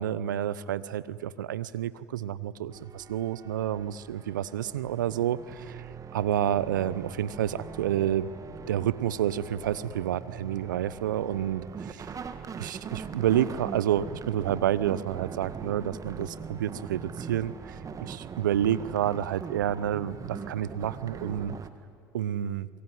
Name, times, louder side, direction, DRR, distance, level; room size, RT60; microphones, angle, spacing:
voice 1, 0.0-5.9 6.1-8.3 8.7-12.1 12.6-21.5 22.1-22.7, right 10 dB, 85° right, 18 dB, 0.8 m, -29 dB
sound 1, 2.7-21.7, right 6 dB, 35° right, 1.8 m, -42 dB
25.0 x 22.5 x 9.4 m, 2.1 s
hypercardioid pair, 70°, 10 cm